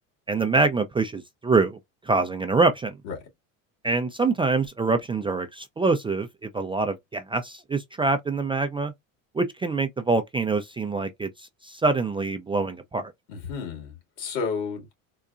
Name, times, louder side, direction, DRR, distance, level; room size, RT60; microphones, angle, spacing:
voice 1, 0.3-1.8 2.0-2.9 3.8-8.9 9.3-13.1, right 3 dB, 15° right, 0.3 m, -25 dB
voice 2, 13.3-14.9, left 5 dB, 80° left, 2.3 m, -32 dB
3.8 x 2.2 x 2.4 m
supercardioid pair, 100°, 40 cm